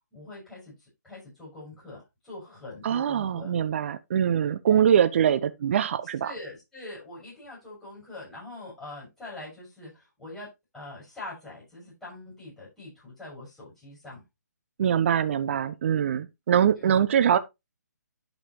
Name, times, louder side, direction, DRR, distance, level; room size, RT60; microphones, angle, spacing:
voice 1, 0.1-3.5 4.7-4.8 6.2-10.5 10.7-14.2 16.8-17.0, left 2 dB, 5° left, 6.0 m, -43 dB
voice 2, 2.8-6.3 14.8-17.4, right 9 dB, 40° right, 0.7 m, -23 dB
11.5 x 5.6 x 3.1 m
figure-of-eight pair, 145°, 10 cm